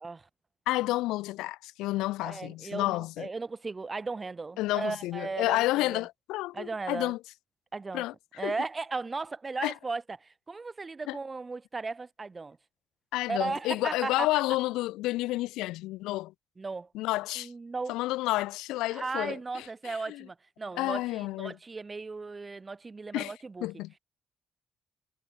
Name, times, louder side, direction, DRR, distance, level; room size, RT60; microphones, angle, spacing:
voice 1, 0.7-3.3 4.6-7.2 7.9-8.1 8.4-8.5 9.6-9.7 11.1-11.2 13.1-16.3 16.9-17.5 17.9-20.3 20.7-21.6 23.1-23.3 23.6-23.9, left 18 dB, 90° left, 1.6 m, -30 dB
voice 2, 2.2-6.0 6.5-7.1 7.7-8.0 8.4-12.6 13.3-14.3 16.6-16.9 17.4-18.0 18.9-23.7, right 3 dB, 30° right, 2.2 m, -36 dB
supercardioid pair, 70°, 0 cm